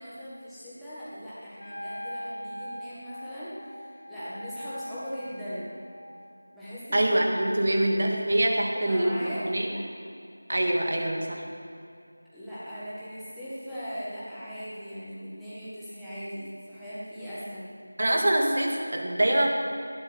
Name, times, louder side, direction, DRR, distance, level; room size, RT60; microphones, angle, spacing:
voice 1, 0.0-5.7 6.5-7.1 7.5-7.8 8.7-9.5 12.3-17.7, equal, ahead, -17 dB, 1.5 m, -39 dB
Wind instrument woodwind instrument, 1.6-6.1, equal, 45° left, 2.2 m, -41 dB
voice 2, 6.9-9.8 10.5-11.4 18.0-19.5, right 1 dB, 45° right, 1 dB, 2.2 m, -25 dB
18.5 x 11.5 x 6.3 m, 2.5 s
figure-of-eight pair, 180°, 0 cm